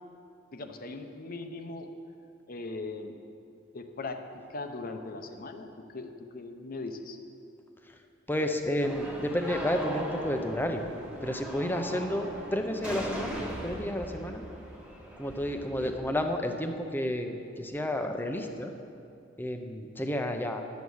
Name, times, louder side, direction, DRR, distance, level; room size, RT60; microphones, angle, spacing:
voice 1, 0.5-1.9 2.5-3.2 3.7-4.2 4.5-7.2 15.8-15.9, left 3 dB, 50° left, 6 dB, 0.8 m, -39 dB
voice 2, 8.3-10.8 11.2-14.4 15.2-18.7 19.4-20.6, left 1 dB, 10° left, 5 dB, 0.7 m, -31 dB
sound 1, 8.8-16.3, right 1 dB, 5° right, 1.3 m, -39 dB
10.5 x 7.2 x 6.3 m, 2.5 s
head